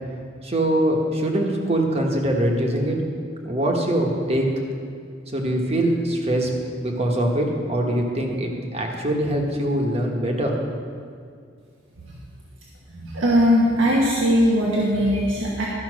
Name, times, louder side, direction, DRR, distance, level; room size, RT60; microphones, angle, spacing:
voice 1, 0.4-3.0 3.4-4.5 5.3-10.5, right 1 dB, 30° right, 1 dB, 1.3 m, -23 dB
voice 2, 12.9-15.7, equal, 85° right, -4 dB, 1.3 m, -19 dB
12.5 x 5.7 x 6.2 m, 2.2 s
head